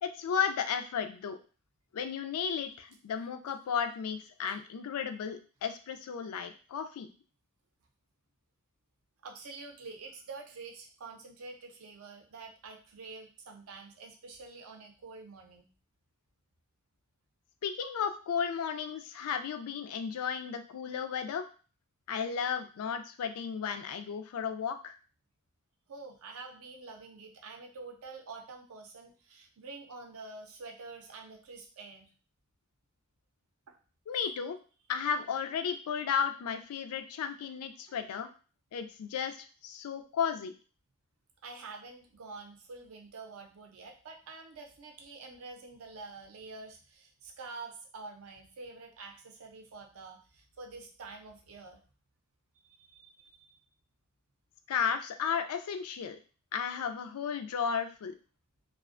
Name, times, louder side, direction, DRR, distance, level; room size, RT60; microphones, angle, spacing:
voice 1, 0.0-1.4 1.9-7.1 17.6-21.5 22.1-25.0 34.1-34.6 34.9-38.3 38.7-40.5 54.7-56.2 56.5-58.1, left 7 dB, 85° left, 9 dB, 0.3 m, -34 dB
voice 2, 9.2-15.7 25.9-32.1 33.7-33.8 34.1-34.3 41.4-51.8 52.6-53.6, right 3 dB, 75° right, 3 dB, 0.5 m, -47 dB
2.4 x 2.1 x 2.4 m, 0.36 s
head